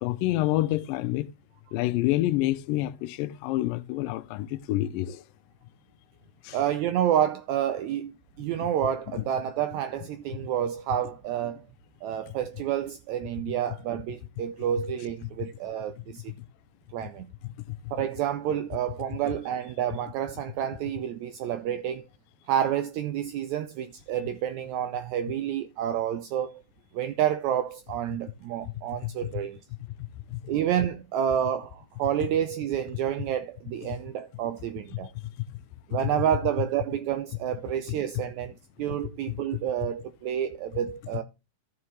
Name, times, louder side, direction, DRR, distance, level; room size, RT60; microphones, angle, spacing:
voice 1, 0.0-1.3 1.7-5.2 6.4-6.6 9.1-9.2 17.4-17.5 17.8-17.9 30.3-30.4, left 16 dB, 90° left, 2.3 m, -27 dB
voice 2, 6.5-8.1 8.4-11.7 12.0-16.3 16.9-17.3 17.9-22.1 22.5-26.6 26.9-29.6 30.5-35.1 35.9-38.5 38.8-41.2, right 10 dB, 85° right, 1.6 m, -29 dB
14.0 x 5.5 x 3.1 m
omnidirectional pair, 3.8 m